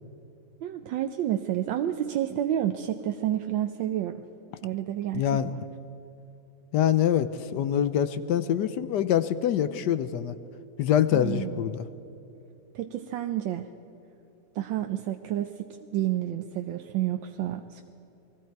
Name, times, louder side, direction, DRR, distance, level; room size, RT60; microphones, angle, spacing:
voice 1, 0.6-4.2 4.6-5.6 11.1-11.8 12.7-13.7 14.5-17.9, right 12 dB, 80° right, 6 dB, 1.4 m, -30 dB
voice 2, 5.1-5.5 6.7-10.3 10.8-11.8, left 10 dB, 70° left, 13 dB, 1.2 m, -25 dB
28.5 x 20.5 x 4.6 m, 2.8 s
omnidirectional pair, 2.0 m